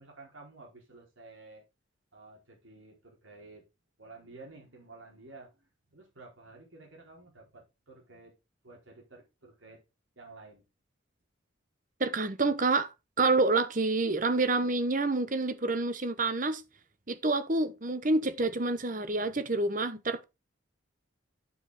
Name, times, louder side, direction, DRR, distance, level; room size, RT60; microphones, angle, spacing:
voice 1, 0.0-1.6 2.1-3.7 4.0-8.3 8.6-9.8 10.2-10.6, right 3 dB, 75° right, 4.7 m, -52 dB
voice 2, 12.0-12.9 13.2-16.6 17.1-20.2, right 3 dB, 40° right, 0.9 m, -28 dB
8.9 x 7.2 x 4.2 m
head